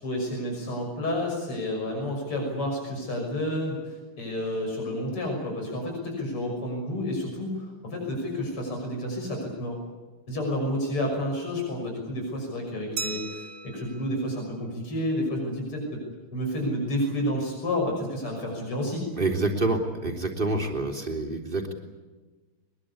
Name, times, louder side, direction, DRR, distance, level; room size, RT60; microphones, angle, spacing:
voice 1, 0.0-9.8 10.3-16.0 16.3-19.1, left 1 dB, 85° left, 1 dB, 7.2 m, -30 dB
Glass, 13.0-15.4, right 4 dB, 45° right, 1.0 m, -39 dB
voice 2, 19.2-21.7, right 2 dB, 20° right, 3 dB, 3.6 m, -27 dB
23.0 x 22.0 x 8.4 m, 1.3 s
omnidirectional pair, 2.4 m